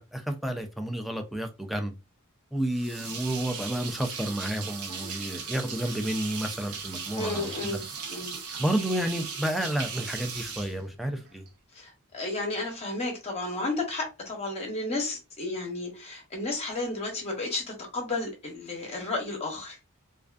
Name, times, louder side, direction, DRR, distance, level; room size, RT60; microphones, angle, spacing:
voice 1, 0.0-1.9 2.5-7.8 8.6-11.4, right 1 dB, ahead, 0.3 m, -31 dB
sound 1, 2.7-11.5, right 5 dB, 75° right, 0.7 m, -38 dB
voice 2, 7.2-7.8 8.1-8.4 11.7-19.8, left 2 dB, 30° left, 0.7 m, -32 dB
2.4 x 2.3 x 2.3 m
head